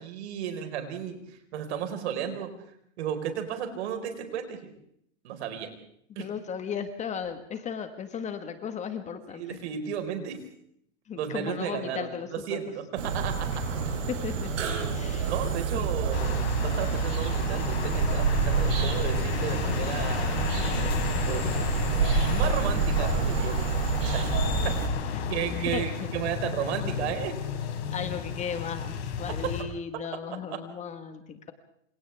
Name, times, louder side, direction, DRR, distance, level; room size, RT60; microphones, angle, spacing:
voice 1, 0.0-2.5 3.0-4.7 5.2-5.7 6.1-6.3 9.3-10.4 11.2-13.6 15.3-20.5 21.2-21.8 22.1-23.6 24.1-24.3 24.6-24.8 25.3-27.4, right 8 dB, 60° right, 6 dB, 4.9 m, -34 dB
voice 2, 6.1-9.6 11.1-12.6 14.1-14.5 14.9-15.4 15.7-15.9 25.1-25.3 25.7-26.1 27.9-31.5, left 7 dB, 20° left, 8 dB, 1.6 m, -36 dB
sound 1, 13.0-24.9, right 5 dB, 80° right, 7.8 m, -28 dB
sound 2, 16.1-29.6, left 7 dB, 60° left, 4.8 m, -32 dB
28.0 x 27.0 x 3.6 m, 0.69 s
hypercardioid pair, 145°, 37 cm